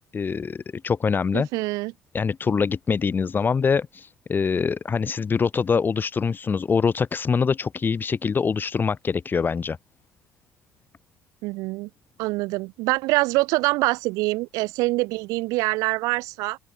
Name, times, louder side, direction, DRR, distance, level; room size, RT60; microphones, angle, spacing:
voice 1, 0.1-1.5 2.1-9.8, left 5 dB, 30° left, 6.5 m, -24 dB
voice 2, 1.3-1.9 11.4-11.9 12.2-16.6, right 22 dB, 60° right, 2.4 m, -25 dB
open air
figure-of-eight pair, 60°, 7 cm